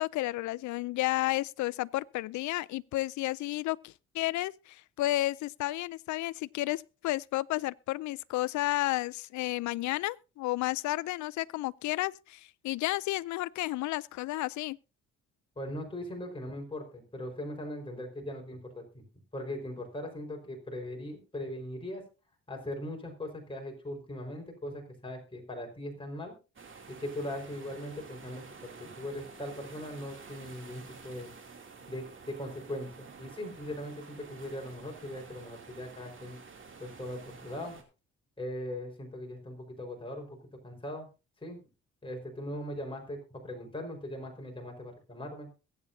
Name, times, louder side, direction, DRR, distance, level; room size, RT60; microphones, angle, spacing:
voice 1, 0.0-14.8, left 17 dB, 75° left, 0.5 m, -32 dB
voice 2, 15.6-19.0 19.3-22.0 22.5-26.3 26.9-31.3 31.9-36.4 36.8-37.8 38.4-40.3 40.6-41.1 41.4-41.6 42.0-45.5, left 1 dB, 15° left, 4.7 m, -40 dB
sound 1, 26.6-37.8, right 5 dB, 40° right, 2.7 m, -50 dB
22.0 x 8.4 x 2.7 m
cardioid pair, 90°, 30 cm